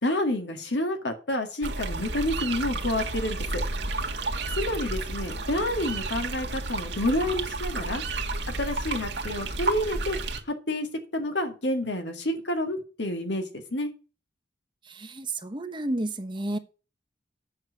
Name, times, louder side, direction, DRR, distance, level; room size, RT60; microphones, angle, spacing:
voice 1, 0.0-3.6 4.5-8.0 8.6-10.2 10.7-10.9 11.1-13.9, left 1 dB, 85° left, 2.1 m, -29 dB
sound 1, 1.6-10.4, right 3 dB, 80° right, 1.7 m, -31 dB
voice 2, 14.8-16.6, right 1 dB, 25° right, 1.0 m, -31 dB
8.5 x 6.5 x 8.2 m
head